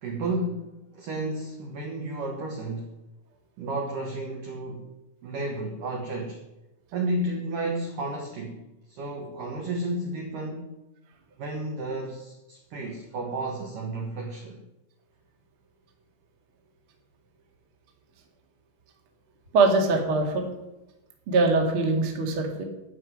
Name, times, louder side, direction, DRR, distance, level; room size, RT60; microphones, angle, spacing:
voice 1, 0.0-2.9 3.6-4.9 5.2-6.4 6.9-10.7 11.4-14.6, right 2 dB, 70° right, 1 dB, 2.0 m, -32 dB
voice 2, 19.5-20.5 21.3-22.6, right 3 dB, 50° right, 2 dB, 1.6 m, -22 dB
12.0 x 5.9 x 9.4 m, 0.99 s
omnidirectional pair, 5.9 m